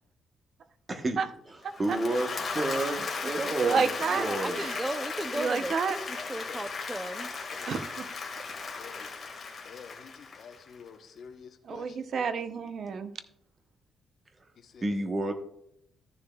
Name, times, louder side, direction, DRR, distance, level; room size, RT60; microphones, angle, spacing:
voice 1, 0.9-1.2 1.8-3.9 4.1-4.6 14.8-15.3, right 2 dB, 25° right, 6 dB, 1.0 m, -30 dB
voice 2, 1.6-2.0 3.6-4.3 4.6-4.8 5.3-6.0 7.7-8.1 11.6-13.1, right 5 dB, 55° right, 10 dB, 0.6 m, -30 dB
Applause / Crowd, 1.7-10.8, left 4 dB, 35° left, 1.7 m, -36 dB
voice 3, 4.1-7.3, right 1 dB, 10° right, 12 dB, 0.5 m, -36 dB
voice 4, 6.5-7.1 7.5-7.7 8.8-9.1 9.6-12.0 14.6-15.1, left 6 dB, 60° left, 6 dB, 0.9 m, -49 dB
14.0 x 6.8 x 2.3 m, 0.74 s
cardioid pair, 125°, 0 cm